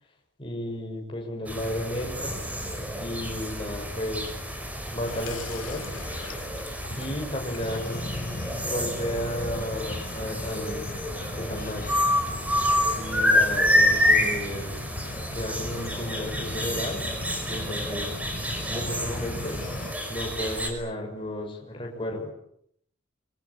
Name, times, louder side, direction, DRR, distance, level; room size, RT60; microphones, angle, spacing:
voice 1, 0.4-2.4 3.0-4.3 4.9-5.9 6.9-10.9 11.3-11.9 12.9-14.8 15.3-17.0 17.5-18.2 18.7-19.6 20.1-22.3, left 1 dB, 25° left, 0 dB, 6.6 m, -33 dB
sound 1, 1.5-20.7, left 1 dB, 5° right, 5.4 m, -28 dB
Water tap faucet / Sink (filling or washing), 5.1-10.2, left 3 dB, 85° left, 4.6 m, -44 dB
sound 2, 7.6-19.9, left 2 dB, 40° left, 1.1 m, -38 dB
26.5 x 24.5 x 8.8 m, 0.70 s
head